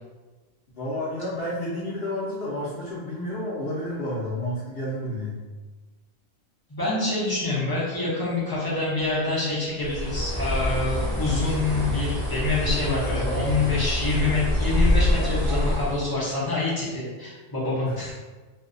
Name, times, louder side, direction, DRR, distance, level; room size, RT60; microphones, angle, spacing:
voice 1, 0.8-5.4 12.8-13.7 17.8-18.0, left 1 dB, 60° left, -9 dB, 0.7 m, -31 dB
voice 2, 6.7-18.1, left 2 dB, 30° left, -9 dB, 0.4 m, -26 dB
Piano, 9.0-12.7, right 6 dB, 70° right, 0.8 m, -40 dB
Bird, 9.8-16.1, left 1 dB, 35° right, 0.7 m, -25 dB
2.5 x 2.1 x 2.4 m, 1.3 s
omnidirectional pair, 1.3 m